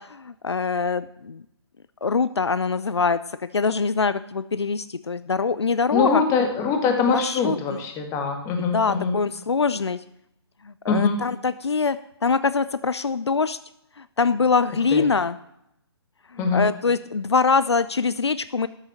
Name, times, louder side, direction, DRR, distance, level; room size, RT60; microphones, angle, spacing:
voice 1, 0.0-1.4 2.0-6.2 7.1-7.6 8.6-10.0 10.6-13.6 14.0-15.4 16.3-18.7, left 5 dB, 80° left, 15 dB, 0.6 m, -24 dB
voice 2, 5.9-9.2 10.9-11.2 14.9-15.0 16.4-16.7, left 5 dB, 20° left, 4 dB, 1.9 m, -23 dB
13.0 x 6.6 x 7.3 m, 0.78 s
figure-of-eight pair, 135°, 14 cm